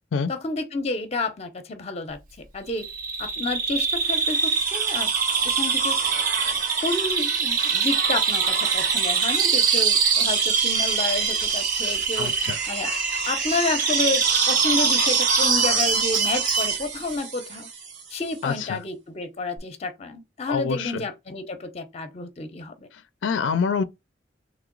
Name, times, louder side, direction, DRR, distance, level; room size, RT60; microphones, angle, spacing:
voice 1, 0.3-2.9 3.2-5.1 5.4-6.0 6.8-12.3 12.7-12.9 13.3-17.7 18.1-22.9, left 3 dB, 35° left, 0.6 m, -30 dB
Bird vocalization bird call bird song, 2.8-16.8, right 6 dB, 50° right, 0.6 m, -25 dB
sound 1, 4.1-18.1 19.6-19.7, right 5 dB, 70° right, 1.0 m, -27 dB
voice 2, 12.2-12.6 18.4-18.8 20.5-21.0 23.2-23.8, left 5 dB, 80° left, 0.4 m, -26 dB
3.2 x 2.9 x 3.8 m
head